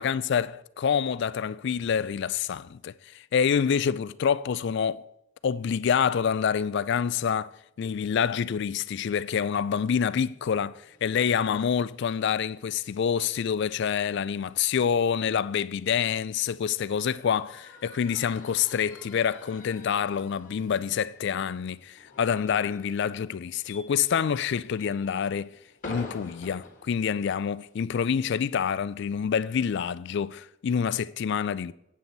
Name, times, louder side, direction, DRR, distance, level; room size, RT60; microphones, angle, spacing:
voice 1, 0.0-5.1 5.4-7.5 7.8-25.5 25.9-31.7, left 7 dB, 55° left, 0.3 m, -27 dB
sound 1, 10.8-27.9, left 2 dB, 35° left, 1.5 m, -49 dB
8.5 x 7.7 x 4.0 m
head